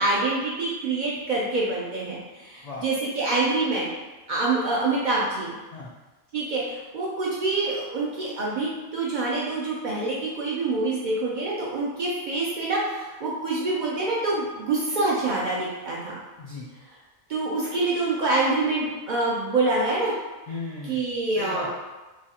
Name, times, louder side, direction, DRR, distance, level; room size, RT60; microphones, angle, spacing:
voice 1, 0.0-3.9 4.3-5.6 6.3-16.2 17.3-20.1 20.9-21.7, right 2 dB, 60° right, -5 dB, 0.5 m, -26 dB
voice 2, 16.4-16.7 20.5-21.0 21.4-21.7, left 3 dB, 65° left, -5 dB, 0.4 m, -36 dB
3.1 x 2.3 x 2.8 m, 1.2 s
omnidirectional pair, 1.2 m